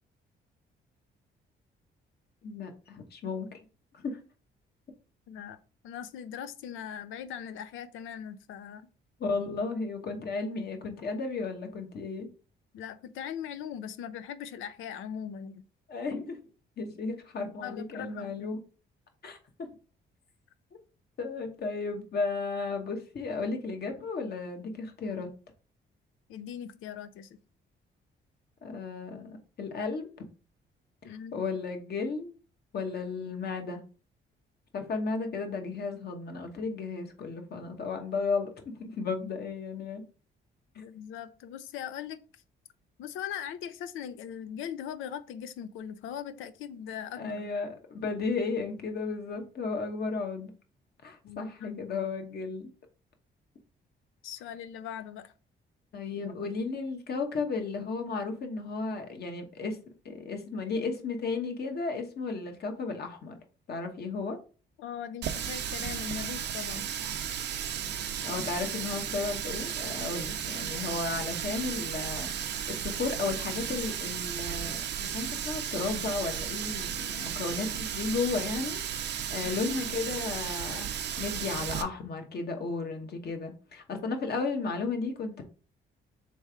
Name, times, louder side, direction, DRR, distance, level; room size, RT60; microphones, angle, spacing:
voice 1, 2.4-3.6 3.9-4.2 9.2-12.3 15.9-16.4 16.8-18.6 19.2-19.4 21.2-25.3 28.6-30.3 31.3-32.3 32.7-33.8 34.7-38.5 38.8-40.0 40.7-40.8 47.2-50.5 51.0-52.7 55.9-59.8 60.0-63.4 63.7-64.4 68.2-80.9 81.2-85.4, left 4 dB, 55° left, 5 dB, 1.1 m, -34 dB
voice 2, 5.3-5.6 5.8-8.9 12.7-15.6 17.6-18.5 26.3-27.4 31.0-31.4 40.8-42.2 43.0-47.5 51.2-52.1 54.2-55.3 64.8-66.8 79.4-79.5, left 9 dB, 90° left, 13 dB, 0.5 m, -40 dB
Water tap faucet, 65.2-81.8, right 9 dB, 60° right, 0.6 m, -34 dB
3.4 x 3.2 x 4.7 m, 0.36 s
cardioid pair, 90°, 20 cm